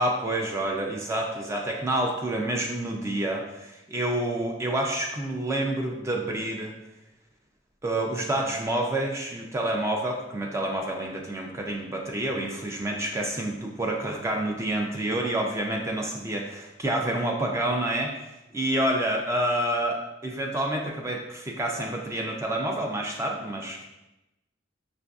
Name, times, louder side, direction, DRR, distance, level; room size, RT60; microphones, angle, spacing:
voice 1, 0.0-6.7 7.8-18.1 18.5-23.8, right 1 dB, 15° right, 0 dB, 0.3 m, -28 dB
5.8 x 2.5 x 2.3 m, 0.94 s
head